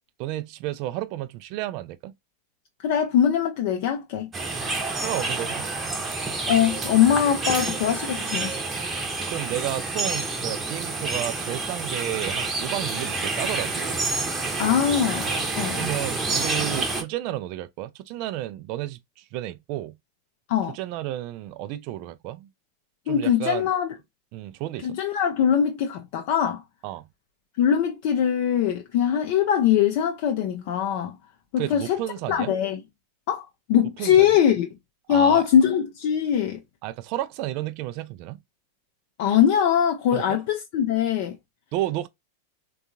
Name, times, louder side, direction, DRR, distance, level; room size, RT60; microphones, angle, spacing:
voice 1, 0.2-2.1 5.0-5.7 9.3-14.0 15.2-15.4 15.7-20.0 20.7-22.5 23.1-23.7 24.3-25.0 26.8-27.1 31.6-32.5 34.0-34.4 35.1-35.4 36.8-38.4 40.1-40.4 41.7-42.1, right 14 dB, 45° right, 0.3 m, -32 dB
voice 2, 2.8-4.3 6.5-8.5 14.6-15.3 15.6-15.9 20.5-20.8 23.1-23.9 24.8-26.6 27.6-31.2 31.5-32.0 32.3-32.8 33.3-34.7 35.1-36.6 39.2-41.4, left 9 dB, 50° left, 0.4 m, -22 dB
sound 1, 4.3-17.0, right 3 dB, 15° right, 0.8 m, -28 dB
3.5 x 2.3 x 2.6 m
figure-of-eight pair, 90°, 0 cm